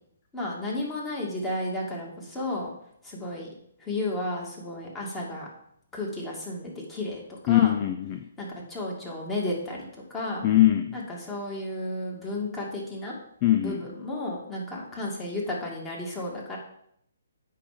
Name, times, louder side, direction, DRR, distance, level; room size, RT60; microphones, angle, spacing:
voice 1, 0.3-2.7 3.0-3.5 3.8-5.5 5.9-7.7 8.4-10.5 10.9-13.2 13.6-16.6, left 1 dB, 10° left, -3 dB, 2.4 m, -33 dB
voice 2, 7.5-8.2 10.4-10.9 13.4-13.8, left 13 dB, 30° left, 7 dB, 0.5 m, -21 dB
8.3 x 5.6 x 5.2 m, 0.71 s
figure-of-eight pair, 135°, 0 cm